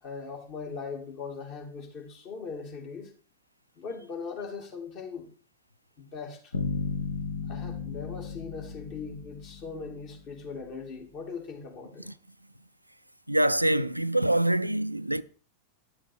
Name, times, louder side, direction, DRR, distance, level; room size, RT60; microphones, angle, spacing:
voice 1, 0.0-3.1 3.8-5.3 6.0-6.5 7.5-12.1, left 5 dB, 40° left, 2.6 m, -40 dB
sound 1, 6.5-10.5, left 5 dB, 75° left, 1.2 m, -35 dB
voice 2, 13.3-15.2, right 1 dB, 90° right, 0.4 m, -25 dB
10.0 x 7.3 x 4.6 m
figure-of-eight pair, 90°, 0 cm